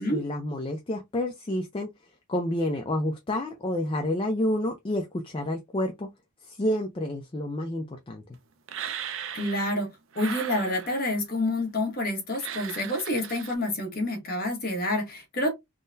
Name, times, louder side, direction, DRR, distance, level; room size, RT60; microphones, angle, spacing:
voice 1, 0.0-1.9 2.3-6.1 6.4-8.2, left 1 dB, 25° left, 0.4 m, -29 dB
sound 1, 8.7-9.8 10.1-11.2 12.3-13.5, right 8 dB, 60° right, 0.4 m, -37 dB
voice 2, 9.3-9.9 10.1-15.5, left 1 dB, 40° left, 1.1 m, -28 dB
3.6 x 2.1 x 2.6 m
head